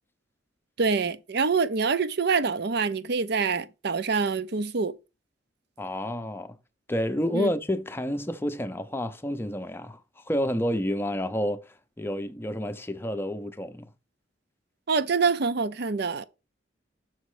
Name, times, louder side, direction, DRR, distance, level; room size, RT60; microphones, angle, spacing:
voice 1, 0.8-4.9 7.3-7.5 14.9-16.2, right 4 dB, 60° right, 0.6 m, -25 dB
voice 2, 5.8-6.6 6.9-10.0 10.3-13.9, equal, 10° left, 0.6 m, -29 dB
6.3 x 5.1 x 4.9 m
head